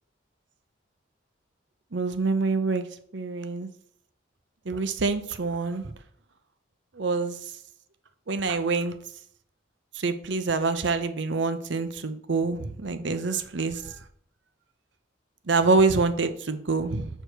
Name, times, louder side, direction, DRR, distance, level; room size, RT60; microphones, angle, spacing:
voice 1, 1.9-2.9 3.1-3.7 4.7-5.8 7.0-7.4 8.3-8.9 10.0-13.8 15.5-17.1, right 3 dB, 65° right, 10 dB, 0.7 m, -26 dB
6.7 x 4.6 x 6.6 m, 0.65 s
head